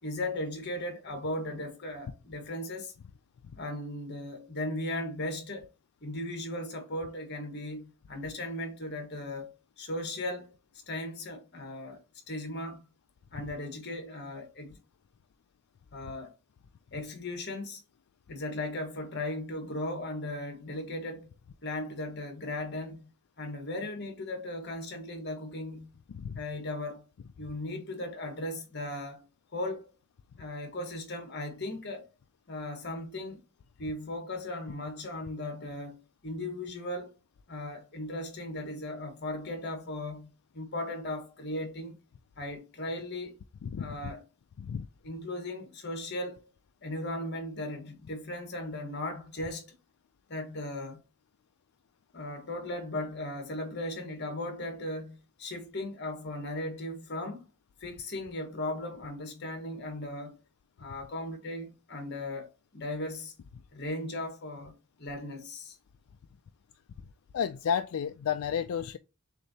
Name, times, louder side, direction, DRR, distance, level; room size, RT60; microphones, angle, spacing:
voice 1, 0.0-2.9 3.5-5.7 6.0-10.5 10.9-12.0 12.3-12.8 13.3-14.8 15.9-16.3 16.9-17.8 18.3-21.3 21.6-23.1 23.4-25.9 26.3-27.1 27.4-29.3 29.5-29.9 30.4-32.1 32.5-33.4 33.8-37.1 37.5-40.3 40.5-42.0 42.4-43.4 43.8-44.2 45.0-46.4 46.8-49.7 50.3-51.0 52.1-57.4 57.8-60.4 60.8-63.3 63.7-65.8, left 1 dB, 50° left, 1.4 m, -37 dB
voice 2, 26.1-26.4 43.6-44.1 44.6-44.9 67.3-69.0, left 7 dB, 80° left, 0.3 m, -32 dB
6.6 x 2.7 x 2.8 m
head